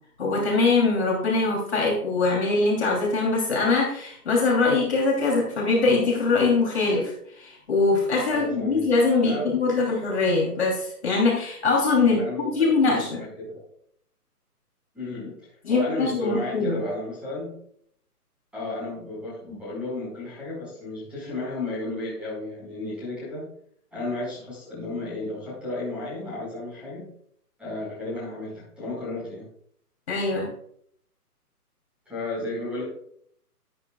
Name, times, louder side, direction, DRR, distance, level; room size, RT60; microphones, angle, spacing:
voice 1, 0.2-13.2 15.6-16.8 30.1-30.5, left 3 dB, 40° left, -3 dB, 3.3 m, -22 dB
voice 2, 8.3-8.8 9.2-9.5 12.0-12.5 12.9-13.6 14.9-15.3 15.7-17.5 18.5-23.4 23.9-27.0 27.6-29.4 32.0-32.8, left 2 dB, ahead, -9 dB, 5.1 m, -33 dB
13.0 x 11.0 x 2.4 m, 0.66 s
hypercardioid pair, 180°, 47 cm